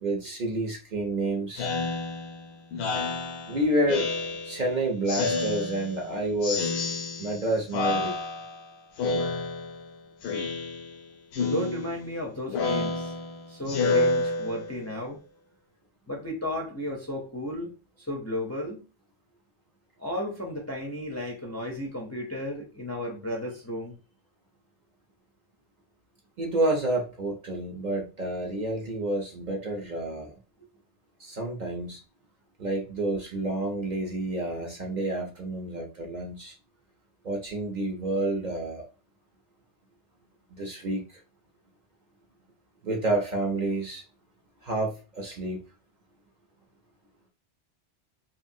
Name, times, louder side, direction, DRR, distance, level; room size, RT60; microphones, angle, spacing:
voice 1, 0.0-1.7 3.5-4.1 4.4-6.7 7.2-8.2 26.4-30.3 31.2-32.0 32.6-36.6 37.2-38.9 40.5-41.2 42.8-44.0 44.6-45.6, right 1 dB, 50° right, 0.6 m, -29 dB
Speech synthesizer, 1.6-4.7 5.1-6.1 6.4-7.4 7.7-8.6 9.0-9.9 10.2-11.0 11.3-14.9, left 3 dB, 75° left, 0.8 m, -29 dB
voice 2, 11.4-13.1 13.5-15.2 16.1-17.7 18.0-18.8 20.0-23.9, left 1 dB, 20° left, 0.4 m, -34 dB
3.0 x 2.4 x 2.6 m
omnidirectional pair, 1.1 m